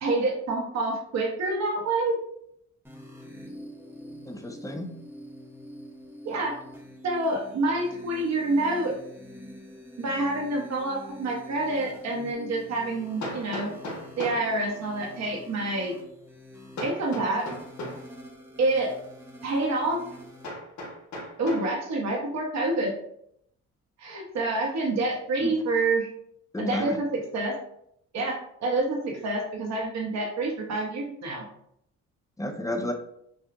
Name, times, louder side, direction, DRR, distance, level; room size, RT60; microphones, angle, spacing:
voice 1, 0.0-2.1 6.2-6.5 7.0-8.9 10.0-13.7 14.2-15.9 16.8-17.5 18.6-18.9 19.4-20.0 21.4-22.9 24.0-26.1 26.6-27.5 28.1-28.4 28.6-31.4, right 2 dB, 60° right, 0 dB, 1.3 m, -27 dB
sound 1, 2.8-20.5, equal, 5° right, 1.0 m, -46 dB
voice 2, 4.3-4.9 25.4-25.5 26.5-27.0 32.4-32.9, left 1 dB, 10° left, 4 dB, 0.6 m, -32 dB
Hammer, 13.2-14.5 16.8-18.1 20.4-21.7, left 1 dB, 75° left, 1.6 m, -36 dB
6.3 x 2.4 x 2.6 m, 0.73 s
cardioid pair, 90°, 30 cm